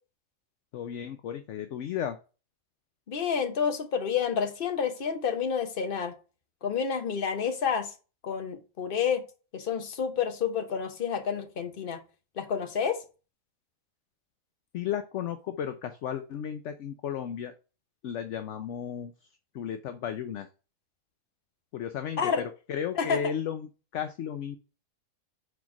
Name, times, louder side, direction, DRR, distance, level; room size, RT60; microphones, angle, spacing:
voice 1, 0.7-2.2 14.7-17.5 18.0-19.3 19.5-20.5 21.7-24.6, left 9 dB, 65° left, 8 dB, 0.9 m, -34 dB
voice 2, 3.1-6.1 6.6-7.9 8.2-9.2 9.5-12.0 12.4-13.0 22.2-22.4 22.9-23.2, left 7 dB, 40° left, 7 dB, 1.1 m, -29 dB
4.6 x 4.3 x 5.8 m, 0.33 s
omnidirectional pair, 1.5 m